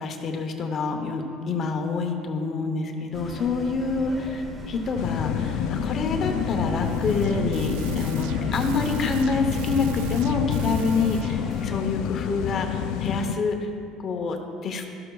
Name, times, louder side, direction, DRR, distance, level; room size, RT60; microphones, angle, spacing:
voice 1, 0.0-13.7 14.0-14.8, left 4 dB, 35° left, 4 dB, 0.8 m, -27 dB
sound 1, 3.1-11.8, right 1 dB, 20° right, 0.9 m, -38 dB
sound 2, 4.9-13.4, left 10 dB, 65° left, 0.3 m, -28 dB
sound 3, 6.8-11.7, right 10 dB, 85° right, 0.3 m, -37 dB
12.5 x 12.5 x 2.3 m, 2.5 s
cardioid pair, 165°, 0 cm